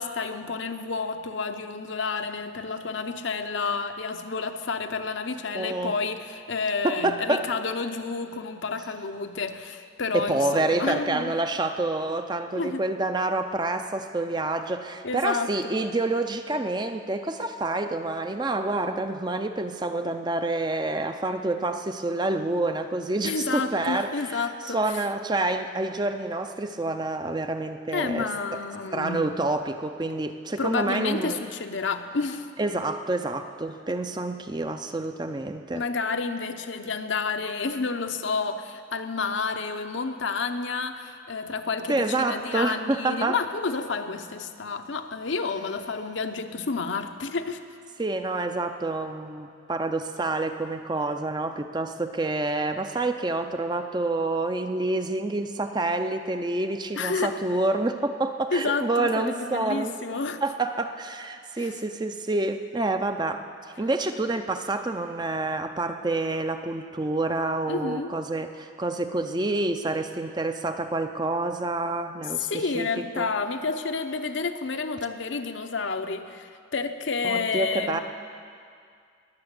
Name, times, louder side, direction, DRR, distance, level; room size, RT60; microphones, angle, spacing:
voice 1, 0.0-11.4 12.5-12.9 15.0-15.7 23.2-24.8 27.9-29.2 30.6-32.5 35.7-47.6 56.9-57.4 58.5-60.4 61.6-61.7 67.7-68.1 72.4-78.0, left 4 dB, 70° left, 7 dB, 0.8 m, -30 dB
voice 2, 5.5-5.9 6.8-7.5 10.1-28.6 28.9-31.4 32.6-35.8 41.9-43.4 48.0-60.0 60.4-63.4 63.8-72.9 73.2-73.3 77.2-78.0, right 2 dB, 20° right, 7 dB, 0.5 m, -28 dB
20.5 x 6.9 x 8.2 m, 2.3 s
head